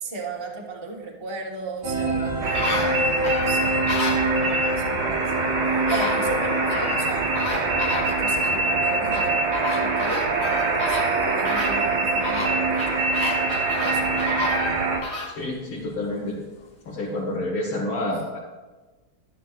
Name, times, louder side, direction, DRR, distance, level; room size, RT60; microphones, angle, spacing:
voice 1, 0.0-3.8 4.1-4.3 4.7-13.5 13.8-14.3, right 3 dB, 20° right, -2 dB, 1.0 m, -36 dB
sound 1, 1.8-15.0, right 3 dB, 40° right, 0.7 m, -27 dB
sound 2, 1.9-4.7 5.5-5.6 5.9-7.0 7.3-8.6 9.1-15.4 15.8-15.9, left 3 dB, 45° left, 0.9 m, -31 dB
sound 3, 2.4-15.0, right 2 dB, 75° right, 2.3 m, -25 dB
voice 2, 15.4-16.4 16.9-18.4, left 1 dB, 75° left, -5 dB, 2.6 m, -28 dB
12.0 x 11.5 x 2.5 m, 1.2 s
omnidirectional pair, 2.4 m